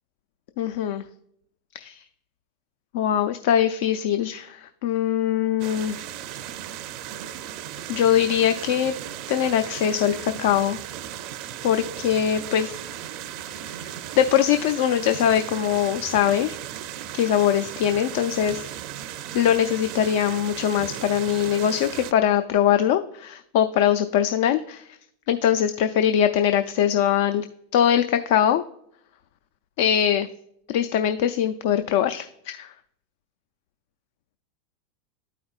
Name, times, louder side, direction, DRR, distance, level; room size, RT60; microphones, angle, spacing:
voice 1, 0.6-1.0 1.7-2.0 2.9-6.0 7.9-8.9 9.3-10.8 11.6-12.7 13.5-16.6 17.1-18.7 19.3-24.8 25.3-27.4 27.7-28.6 29.8-30.3 30.7-32.7, left 10 dB, 65° left, 9 dB, 0.4 m, -22 dB
sound 1, 5.6-22.1, right 11 dB, 55° right, 0.4 m, -36 dB
12.0 x 4.9 x 2.4 m, 0.72 s
hypercardioid pair, 100°, 0 cm